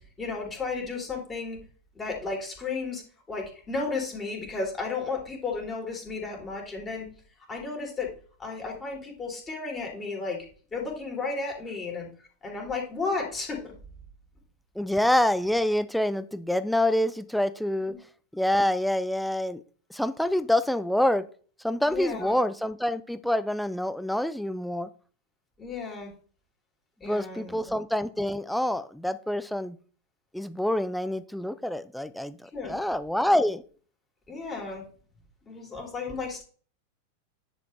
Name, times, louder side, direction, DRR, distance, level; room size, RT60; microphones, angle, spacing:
voice 1, 0.2-1.6 2.0-7.1 7.5-8.1 8.4-10.4 10.7-12.1 12.4-13.7 21.9-22.4 25.6-26.1 27.0-27.6 32.5-32.8 34.3-34.9 35.5-36.4, left 4 dB, 20° left, -1 dB, 3.5 m, -33 dB
voice 2, 14.8-17.9 18.3-19.6 19.9-21.3 21.6-24.9 27.1-29.8 30.3-33.6, left 1 dB, ahead, 14 dB, 0.5 m, -26 dB
10.5 x 4.8 x 3.3 m, 0.42 s
figure-of-eight pair, 90°, 0 cm